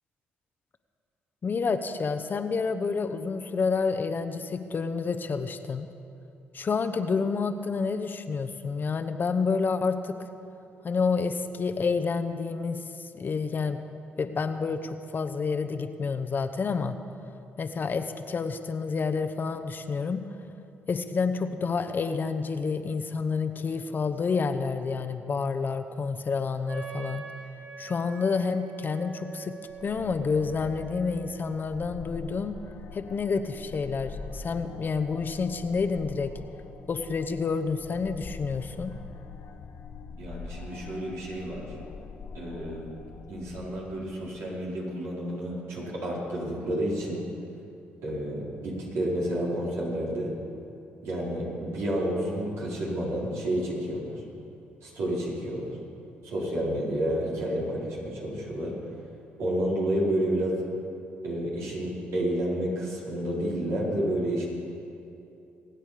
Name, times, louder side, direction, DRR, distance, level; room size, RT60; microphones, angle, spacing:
voice 1, 1.4-5.9 6.5-10.2 10.8-13.8 14.2-17.0 17.6-20.2 20.9-27.2 27.8-32.5 32.9-36.3 36.9-38.9, left 5 dB, 45° left, 9 dB, 0.9 m, -29 dB
Wind instrument woodwind instrument, 26.7-32.3, right 6 dB, 50° right, 3.8 m, -45 dB
sound 1, 29.7-44.3, left 5 dB, 65° left, 1.1 m, -44 dB
voice 2, 40.2-41.7 42.3-42.9 43.3-47.3 48.0-50.3 51.0-54.2 54.8-55.7 56.2-58.7 59.4-60.5 61.2-64.4, right 1 dB, 80° right, -5 dB, 4.5 m, -30 dB
23.5 x 9.0 x 5.1 m, 2.7 s
supercardioid pair, 65°, 5 cm